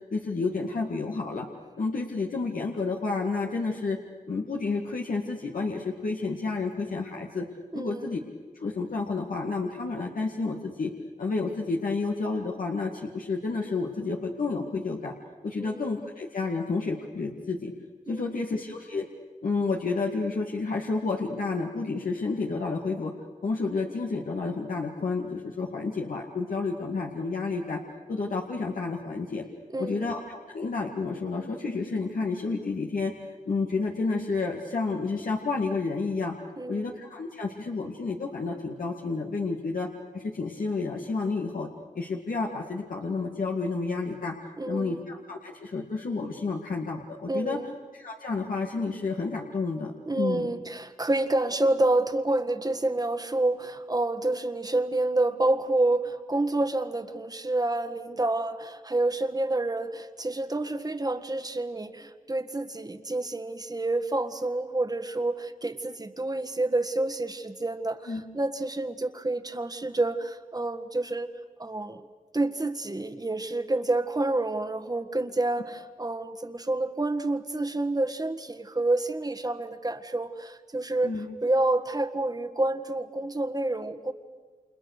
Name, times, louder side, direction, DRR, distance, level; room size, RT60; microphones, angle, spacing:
voice 1, 0.1-1.5 1.8-4.0 4.3-7.5 7.7-8.2 8.5-10.9 11.2-15.1 15.4-17.7 18.1-19.1 19.4-23.1 23.4-27.8 28.1-29.4 29.8-33.1 33.5-36.3 36.7-39.9 40.1-41.7 41.9-44.3 44.7-47.6 47.9-50.5 68.1-68.2 81.0-81.4, left 3 dB, 80° left, 0 dB, 2.1 m, -30 dB
voice 2, 7.7-8.2 15.6-15.9 18.1-18.5 29.7-30.1 36.6-37.0 44.6-45.1 47.3-47.8 50.1-71.3 71.6-72.1 72.3-84.1, right 2 dB, 25° right, 8 dB, 1.6 m, -28 dB
29.0 x 28.0 x 6.7 m, 1.5 s
wide cardioid pair, 65°, 14 cm